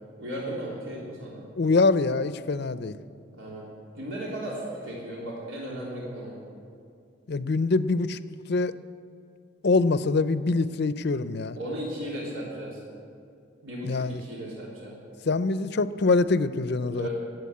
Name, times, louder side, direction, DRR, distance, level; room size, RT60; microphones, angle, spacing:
voice 1, 0.2-1.4 3.3-3.7 4.0-6.4 11.6-12.8 13.6-15.0 16.9-17.1, right 1 dB, 85° right, -5 dB, 3.3 m, -35 dB
voice 2, 1.6-2.9 7.3-8.2 8.5-8.7 9.6-11.6 13.8-14.2 15.3-17.1, left 3 dB, 55° left, 14 dB, 0.5 m, -24 dB
18.0 x 8.1 x 8.3 m, 2.4 s
head